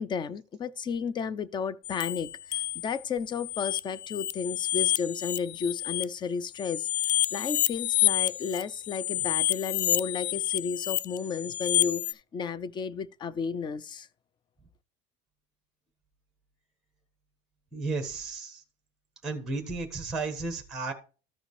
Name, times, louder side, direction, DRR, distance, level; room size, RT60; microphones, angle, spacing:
voice 1, 0.0-6.9 7.3-14.1, left 6 dB, 20° left, 0.4 m, -33 dB
sound 1, 1.8-3.0 3.3-6.0 6.5-12.1, left 16 dB, 80° left, 0.4 m, -29 dB
voice 2, 17.7-18.6 19.2-20.9, right 3 dB, ahead, 1.4 m, -33 dB
14.0 x 5.0 x 3.2 m
cardioid pair, 135°, 21 cm